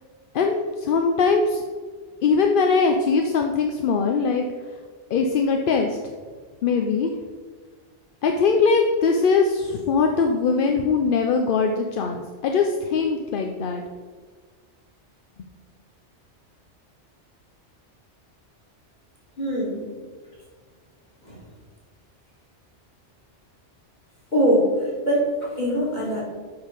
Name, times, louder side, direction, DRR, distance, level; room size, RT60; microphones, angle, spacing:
voice 1, 0.3-1.6 2.2-4.4 5.1-6.0 6.6-7.1 8.2-13.8, left 4 dB, 55° left, 4 dB, 0.7 m, -21 dB
voice 2, 19.4-19.9 21.2-21.4 24.3-26.2, equal, 40° left, -4 dB, 2.3 m, -22 dB
7.3 x 5.5 x 4.9 m, 1.5 s
omnidirectional pair, 1.2 m